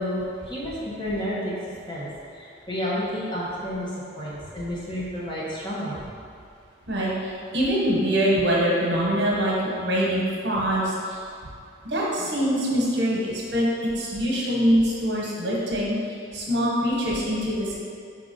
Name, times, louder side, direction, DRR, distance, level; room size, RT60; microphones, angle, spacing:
voice 1, 0.0-2.1 2.3-3.9 4.1-5.9, equal, 25° left, -8 dB, 1.2 m, -30 dB
voice 2, 6.9-11.2 11.8-13.7 14.0-15.9 16.3-17.7, equal, 65° right, -4 dB, 1.2 m, -24 dB
4.6 x 3.8 x 5.4 m, 2.3 s
head